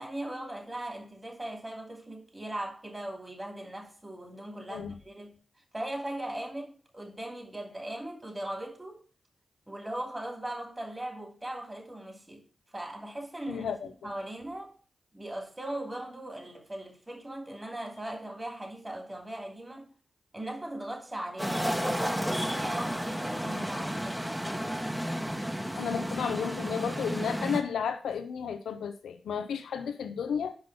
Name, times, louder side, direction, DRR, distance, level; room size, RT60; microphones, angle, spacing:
voice 1, 0.0-5.4 5.7-9.0 9.7-12.4 12.7-13.7 14.0-14.7 15.1-19.9 20.3-24.2, right 1 dB, 25° right, 2.7 m, -39 dB
voice 2, 13.5-13.9 25.7-30.5, left 7 dB, 90° left, 0.7 m, -32 dB
sound 1, 21.4-27.6, equal, 5° right, 1.2 m, -32 dB
5.6 x 5.2 x 5.7 m
supercardioid pair, 40°, 0 cm